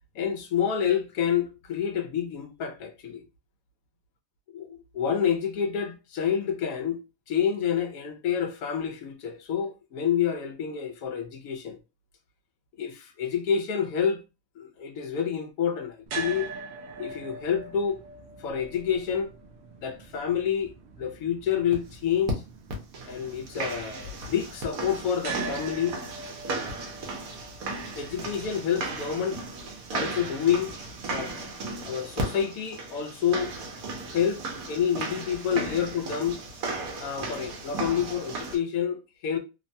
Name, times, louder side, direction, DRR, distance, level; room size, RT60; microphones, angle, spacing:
voice 1, 0.1-3.2 4.5-7.0 7.3-11.8 12.8-14.2 14.6-16.5 17.0-18.0 18.4-19.3 19.8-22.4 23.1-26.0 27.9-29.4 29.9-30.7 31.1-31.3 31.8-33.6 34.1-36.4 37.0-39.4, left 8 dB, 80° left, 1.1 m, -28 dB
sound 1, 16.1-32.2, right 4 dB, 60° right, 0.7 m, -43 dB
sound 2, 21.7-21.8 22.3-22.4 22.7-38.6, right 3 dB, 80° right, 1.2 m, -35 dB
3.1 x 2.2 x 2.6 m
omnidirectional pair, 1.5 m